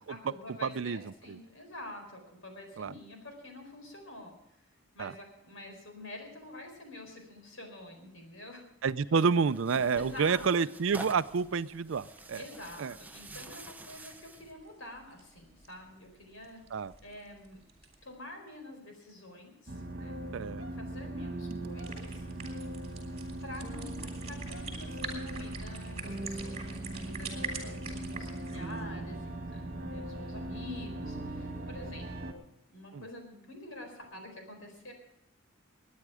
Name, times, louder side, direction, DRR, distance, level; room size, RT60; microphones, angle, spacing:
voice 1, 0.1-4.3 4.9-8.7 9.9-10.5 12.3-16.6 17.0-17.6 18.0-20.2 20.8-22.3 23.4-34.9, left 1 dB, 75° left, 4 dB, 4.3 m, -47 dB
voice 2, 0.6-1.0 1.3-1.4 2.8-2.9 5.0-5.1 8.8-12.4 12.8-12.9 16.7-16.9 20.3-20.6 27.6-27.7 32.9-33.0, right 5 dB, 65° right, 15 dB, 0.4 m, -29 dB
Tearing, 9.2-14.5, right 2 dB, 10° right, 0.6 m, -48 dB
sound 1, 10.8-18.1 21.5-28.8, right 4 dB, 30° right, 3.2 m, -46 dB
sound 2, 19.7-32.3, right 1 dB, 45° right, 1.9 m, -39 dB
21.0 x 9.5 x 4.9 m, 0.80 s
head